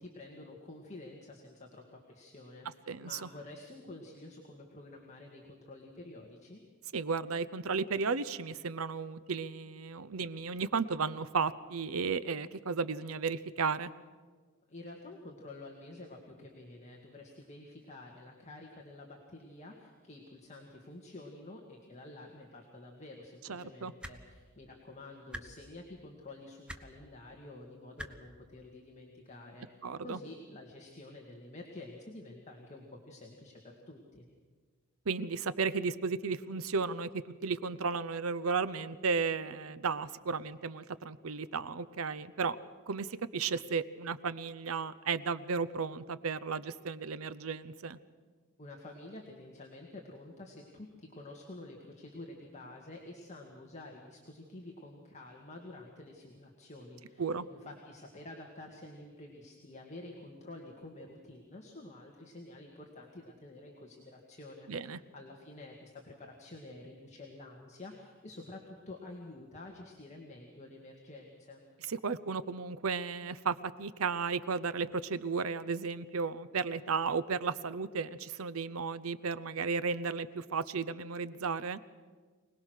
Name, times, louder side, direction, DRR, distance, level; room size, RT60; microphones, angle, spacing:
voice 1, 0.0-6.6 14.7-33.6 33.9-34.3 48.6-71.6, left 2 dB, 35° left, 0 dB, 2.0 m, -49 dB
voice 2, 2.9-3.3 6.9-13.9 23.5-23.9 29.8-30.2 35.1-42.6 42.9-48.0 57.2-57.5 64.7-65.0 71.9-81.8, right 5 dB, 75° right, 15 dB, 0.7 m, -34 dB
sound 1, 24.0-24.2 25.3-25.4 26.7-26.8 28.0-28.1 29.3-29.4, equal, 5° right, 1.0 m, -42 dB
25.0 x 19.0 x 6.5 m, 1.5 s
head